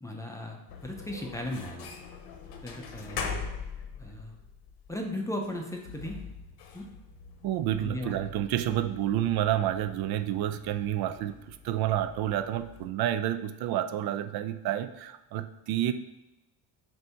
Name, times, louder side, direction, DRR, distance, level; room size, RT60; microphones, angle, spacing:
voice 1, 0.0-1.9 2.6-3.4 4.0-4.3 4.9-6.2 6.7-6.9 7.8-8.2, left 1 dB, 10° left, 1 dB, 0.5 m, -36 dB
sound 1, 0.7-12.9, left 5 dB, 70° left, 1.0 m, -43 dB
voice 2, 7.4-15.9, right 12 dB, 65° right, 10 dB, 0.5 m, -29 dB
7.9 x 2.7 x 5.6 m, 0.95 s
cardioid pair, 175°, 40 cm